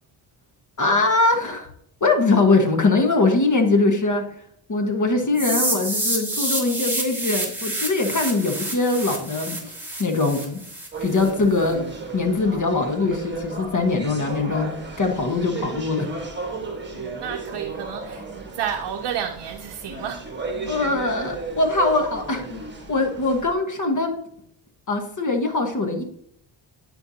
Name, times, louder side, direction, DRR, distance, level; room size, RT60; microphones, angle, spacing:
voice 1, 0.8-1.7 2.0-4.2 4.7-9.7 10.0-10.6 11.0-11.8 12.1-14.7 15.0-16.1 20.7-22.4 22.9-24.2 24.9-26.0, left 3 dB, 35° left, 1.4 m, -22 dB
voice 2, 5.3-5.8 16.9-20.2, right 8 dB, 55° right, 0.7 m, -31 dB
sound 1, 5.4-11.3, right 1 dB, 5° right, 2.7 m, -28 dB
sound 2, 10.9-23.5, right 3 dB, 20° right, 1.4 m, -34 dB
10.5 x 4.6 x 2.8 m
cardioid pair, 70°, 50 cm